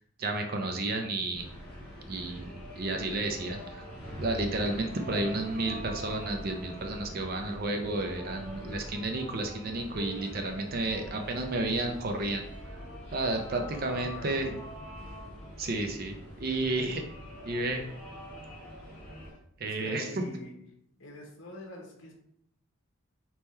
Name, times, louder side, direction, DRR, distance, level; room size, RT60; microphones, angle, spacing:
voice 1, 0.2-1.4 2.1-2.5 2.8-3.8 4.2-12.4 13.1-14.6 15.6-17.0 17.5-17.8 19.6-20.2, right 2 dB, 45° right, 4 dB, 0.5 m, -31 dB
sound 1, 1.3-19.3, equal, 5° left, 1.6 m, -43 dB
voice 2, 13.5-14.4 19.3-19.4 19.6-20.6 21.0-22.2, left 1 dB, 60° left, -1 dB, 1.0 m, -46 dB
3.6 x 2.9 x 4.2 m, 0.74 s
head